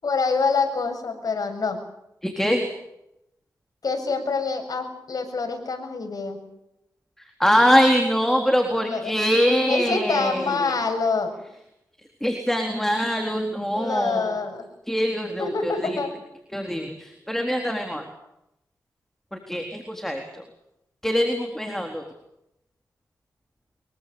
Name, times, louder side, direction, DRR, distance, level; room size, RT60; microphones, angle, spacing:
voice 1, 0.0-1.8 3.8-6.4 8.7-9.2 9.7-11.3 13.7-14.7 15.4-16.1, left 4 dB, 60° left, 5 dB, 7.0 m, -26 dB
voice 2, 2.2-2.7 7.4-10.7 12.2-14.4 14.9-16.0 16.5-18.0 19.3-20.4 21.0-22.0, equal, 5° left, 3 dB, 3.9 m, -23 dB
24.0 x 23.5 x 7.0 m, 0.86 s
cardioid pair, 65°, 7 cm